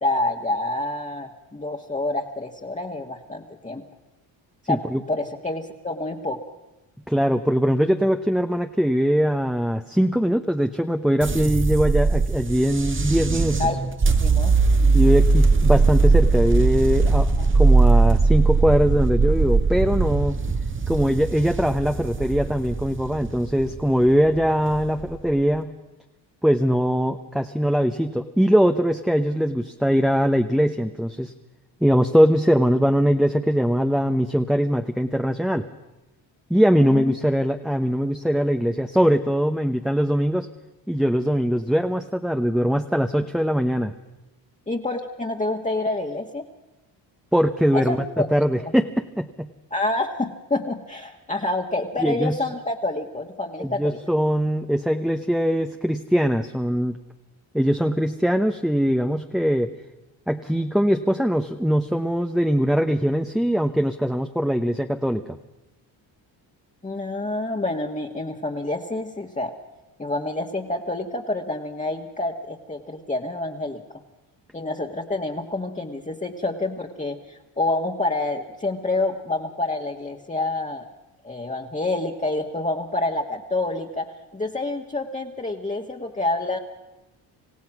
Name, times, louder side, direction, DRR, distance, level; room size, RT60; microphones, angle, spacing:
voice 1, 0.0-3.8 4.7-4.8 5.1-6.4 13.6-13.8 14.2-14.6 17.4-17.5 36.9-37.1 44.7-46.5 47.7-48.3 48.6-48.7 49.7-54.0 66.8-69.5 70.0-73.8 74.5-80.9 81.2-86.6, left 2 dB, 15° left, 0 dB, 1.6 m, -27 dB
voice 2, 4.7-5.0 7.1-13.6 14.9-20.4 20.9-25.8 26.4-31.3 31.8-35.7 36.5-40.5 40.9-43.9 47.3-49.5 52.0-52.4 53.6-57.0 57.5-59.7 60.3-65.4, equal, ahead, 5 dB, 0.9 m, -21 dB
sound 1, 11.2-25.4, right 3 dB, 25° right, 1.3 m, -20 dB
27.5 x 15.5 x 6.1 m, 0.97 s
cardioid pair, 75°, 46 cm